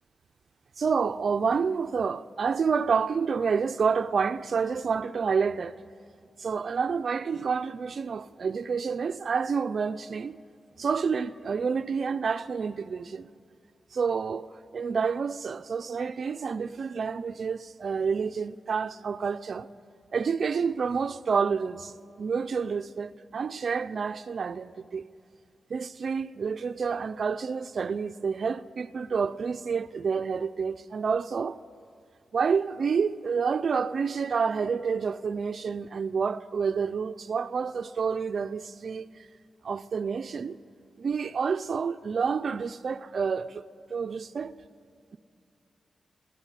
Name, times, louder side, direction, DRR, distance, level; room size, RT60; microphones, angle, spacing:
voice 1, 0.8-5.8 6.4-10.4 10.8-13.3 13.9-19.7 20.1-25.0 25.7-31.6 32.3-39.1 39.6-40.6 41.0-43.6 43.9-44.5, right 5 dB, 50° right, 0.5 m, -29 dB
25.0 x 11.0 x 9.8 m
wide cardioid pair, 165°, 0 cm